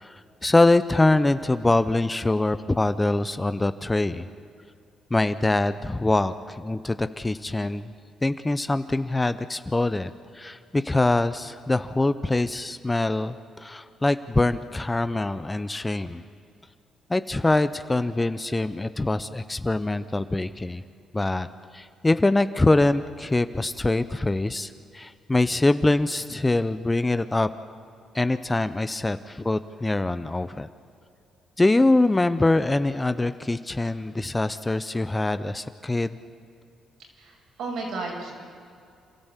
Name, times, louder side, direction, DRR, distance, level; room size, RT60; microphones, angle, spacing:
voice 1, 0.0-4.3 5.1-7.9 8.2-16.2 17.1-20.8 21.1-21.5 21.7-27.5 28.1-30.7 31.6-36.2, left 2 dB, 15° left, 12 dB, 0.8 m, -24 dB
voice 2, 37.0-38.3, right 3 dB, 75° right, -1 dB, 6.2 m, -34 dB
28.0 x 13.5 x 8.3 m, 2.4 s
cardioid pair, 90°, 0 cm